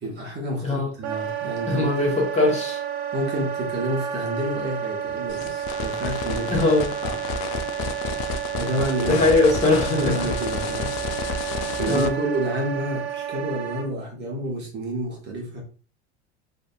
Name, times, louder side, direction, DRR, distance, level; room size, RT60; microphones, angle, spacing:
voice 1, 0.0-2.1 3.1-6.7 7.0-7.2 8.6-9.5 9.9-10.9 11.8-15.6, right 1 dB, 30° right, 0 dB, 0.9 m, -29 dB
Wind instrument woodwind instrument, 1.0-13.9, right 9 dB, 65° right, 0.6 m, -31 dB
voice 2, 1.7-2.8 6.5-6.9 9.1-10.1 11.8-12.1, left 2 dB, 20° left, -1 dB, 1.0 m, -20 dB
sound 1, 5.3-12.1, left 6 dB, 50° left, 0.4 m, -31 dB
2.6 x 2.5 x 2.2 m, 0.39 s
hypercardioid pair, 90°, 33 cm